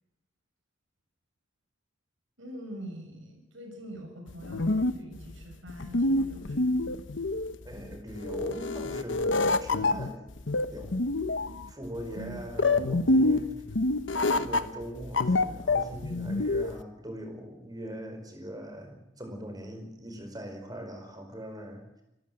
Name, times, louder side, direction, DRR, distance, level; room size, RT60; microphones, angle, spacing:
voice 1, 2.4-7.0 12.1-12.4, equal, 85° right, 3 dB, 6.6 m, -44 dB
sound 1, 4.3-16.8, left 2 dB, 70° left, 1.0 m, -27 dB
voice 2, 7.6-10.3 10.7-11.0 11.7-13.5 14.3-22.0, equal, 20° right, 5 dB, 4.7 m, -41 dB
25.0 x 14.5 x 7.9 m, 0.87 s
head